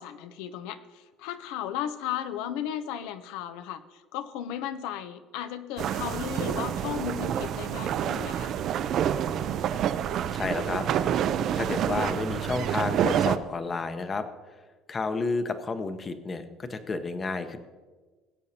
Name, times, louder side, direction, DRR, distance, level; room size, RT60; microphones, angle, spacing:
voice 1, 0.0-8.5, left 10 dB, 80° left, 11 dB, 0.6 m, -35 dB
sound 1, 5.8-13.4, right 9 dB, 50° right, 0.5 m, -28 dB
voice 2, 10.3-10.9 11.5-14.3 14.9-17.6, left 3 dB, 25° left, 9 dB, 0.8 m, -31 dB
18.0 x 8.2 x 2.8 m, 1.3 s
cardioid pair, 125°, 0 cm